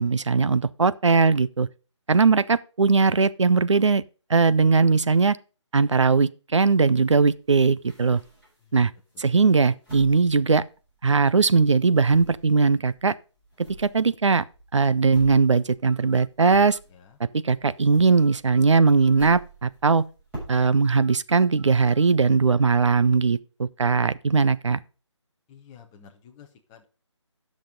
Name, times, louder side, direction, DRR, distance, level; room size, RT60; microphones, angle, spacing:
voice 1, 0.0-1.7 2.1-4.0 4.3-5.4 5.7-8.2 8.7-8.9 9.2-10.6 11.0-13.1 13.8-14.4 14.7-16.8 17.2-20.0 20.5-24.8, right 4 dB, 75° right, 0.7 m, -20 dB
sound 1, 6.6-8.7 9.2-11.3 11.6-17.3 17.5-20.9, right 1 dB, 10° right, 6.8 m, -45 dB
voice 2, 9.4-9.8 16.9-17.2 25.5-26.9, left 7 dB, 10° left, 0.8 m, -51 dB
10.0 x 6.4 x 5.2 m
figure-of-eight pair, 165°, 16 cm